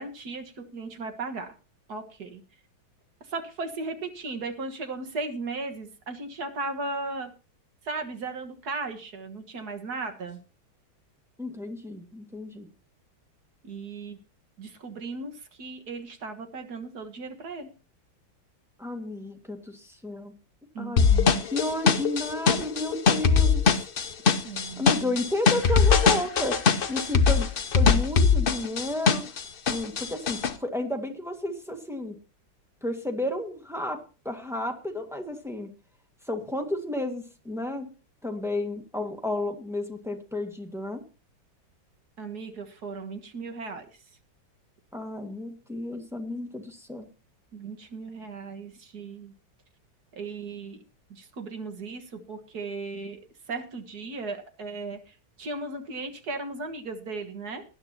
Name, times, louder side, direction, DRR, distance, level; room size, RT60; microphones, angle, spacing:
voice 1, 0.0-1.5 1.9-2.4 3.3-7.3 7.8-10.4 13.6-14.2 14.6-17.7 20.7-21.5 24.4-25.2 42.2-43.9 47.5-49.3 50.1-50.8 51.1-53.2 53.5-57.6, right 3 dB, 55° right, 6 dB, 2.0 m, -36 dB
voice 2, 11.4-12.7 18.8-20.3 20.8-21.1 21.4-23.9 24.8-26.6 26.9-27.5 27.7-29.4 29.7-32.1 32.8-34.0 34.2-35.7 36.3-37.9 38.2-41.0 44.9-47.1, left 1 dB, ahead, 3 dB, 1.6 m, -32 dB
sound 1, 21.0-29.4 29.7-30.5, left 5 dB, 60° left, 0.5 m, -21 dB
19.5 x 10.5 x 2.8 m, 0.34 s
omnidirectional pair, 2.1 m